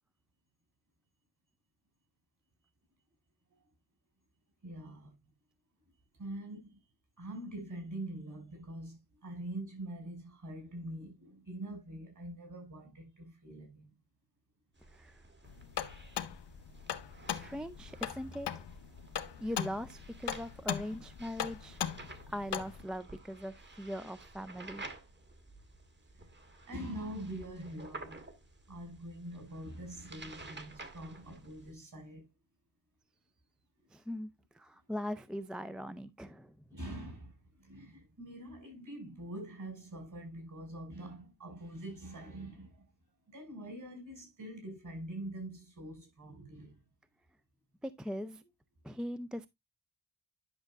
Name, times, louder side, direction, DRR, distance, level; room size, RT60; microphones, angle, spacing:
voice 1, 4.6-5.3 6.2-6.8 7.2-13.9 26.7-28.2 28.7-32.3 36.7-42.9 43.3-46.8, right 1 dB, 50° right, 5.6 m, -44 dB
sound 1, 14.8-31.7, right 2 dB, 25° right, 1.5 m, -52 dB
voice 2, 14.9-15.2 17.3-18.6 19.4-21.8 22.3-24.9 33.9-36.5 47.8-48.4 48.8-49.5, equal, ahead, 0.4 m, -40 dB
sound 2, 15.5-22.8, left 9 dB, 85° left, 0.9 m, -39 dB
10.5 x 6.4 x 2.4 m
wide cardioid pair, 135°, 40 cm